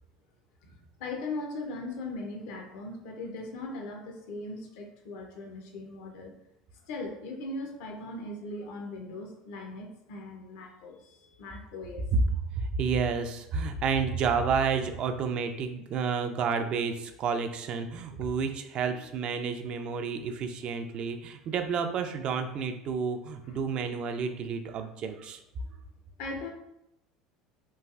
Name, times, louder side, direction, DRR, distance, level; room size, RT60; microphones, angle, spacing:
voice 1, 0.6-6.3 6.8-12.1 18.9-19.1 23.4-23.6 25.6-25.8 26.2-26.5, left 2 dB, 70° left, 2 dB, 0.6 m, -39 dB
voice 2, 12.6-25.4, right 5 dB, 50° right, 7 dB, 0.3 m, -30 dB
3.1 x 2.5 x 2.4 m, 0.81 s
hypercardioid pair, 80°, 2 cm